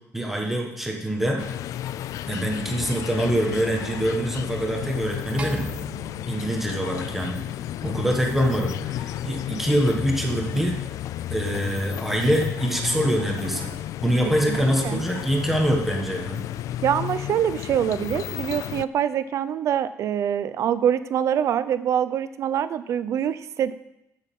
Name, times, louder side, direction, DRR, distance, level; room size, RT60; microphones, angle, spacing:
voice 1, 0.1-1.4 2.3-5.7 6.3-7.4 7.8-10.8 11.3-13.7 14.0-16.4, equal, 5° right, 0 dB, 1.4 m, -24 dB
sound 1, 1.4-18.9, left 12 dB, 75° left, 0.4 m, -33 dB
sound 2, 5.4-7.8, right 4 dB, 20° right, 1.2 m, -38 dB
voice 2, 14.5-15.0 16.8-23.7, right 9 dB, 60° right, 13 dB, 0.6 m, -25 dB
15.5 x 6.5 x 5.4 m, 0.86 s
cardioid pair, 165°, 6 cm